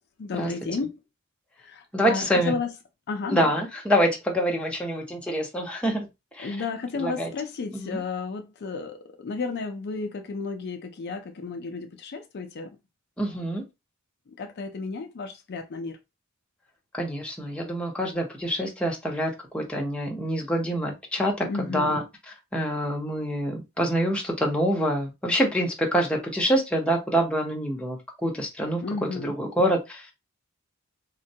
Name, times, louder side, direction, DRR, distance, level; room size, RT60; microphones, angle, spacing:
voice 1, 0.2-1.0 1.6-2.7 3.1-3.5 6.4-12.7 13.3-13.4 14.4-16.0 21.4-22.0 28.8-29.4, left 4 dB, 50° left, 0.4 m, -32 dB
voice 2, 1.9-2.6 3.3-6.1 6.3-6.6 6.9-7.3 7.7-8.0 13.2-13.6 16.9-28.8 29.2-30.1, equal, 5° left, 0.7 m, -26 dB
3.6 x 2.1 x 2.7 m
head